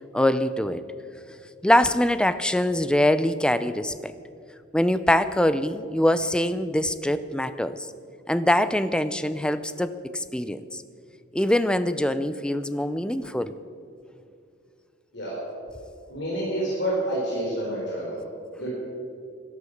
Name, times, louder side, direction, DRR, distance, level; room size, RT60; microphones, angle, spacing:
voice 1, 0.1-0.8 1.6-4.1 4.7-7.9 8.3-10.8 11.3-13.5, left 1 dB, 5° left, 13 dB, 0.5 m, -23 dB
voice 2, 16.1-18.2 18.6-18.7, right 1 dB, 60° left, -5 dB, 4.0 m, -28 dB
17.5 x 11.5 x 6.6 m, 2.4 s
head